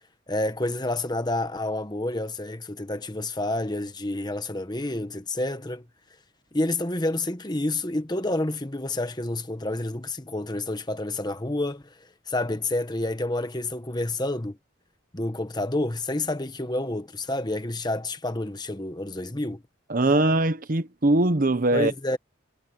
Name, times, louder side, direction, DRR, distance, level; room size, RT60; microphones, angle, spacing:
voice 1, 0.3-5.8 6.5-11.9 12.3-14.6 15.1-19.6 21.7-22.2, left 2 dB, 20° left, 1.2 m, -29 dB
voice 2, 19.9-21.9, right 2 dB, 45° right, 0.9 m, -21 dB
head